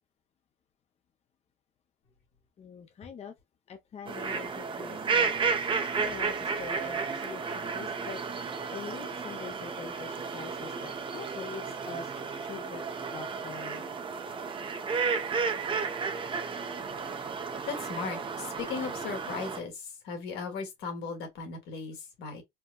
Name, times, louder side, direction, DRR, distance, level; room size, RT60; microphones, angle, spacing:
voice 1, 2.6-3.3 3.7-8.2 8.7-12.8 13.1-13.9, left 7 dB, 40° left, 0.7 m, -44 dB
sound 1, 4.1-19.6, right 5 dB, 30° right, 0.7 m, -33 dB
voice 2, 17.7-22.4, left 5 dB, 80° left, 1.7 m, -37 dB
4.4 x 2.2 x 2.3 m
cardioid pair, 110°, 17 cm